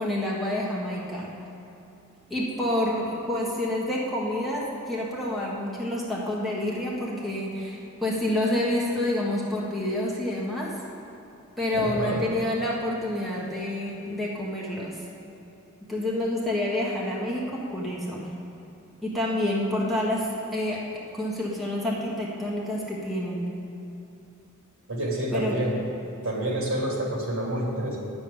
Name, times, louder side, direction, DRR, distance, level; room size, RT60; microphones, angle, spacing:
voice 1, 0.0-1.3 2.3-10.7 11.6-15.0 15.9-18.3 19.0-20.8 21.1-23.5 25.3-25.6, left 1 dB, ahead, -5 dB, 1.4 m, -28 dB
voice 2, 11.7-12.2 24.9-25.7 26.2-28.0, right 1 dB, 70° right, -3 dB, 3.0 m, -28 dB
9.8 x 7.0 x 8.8 m, 2.9 s
head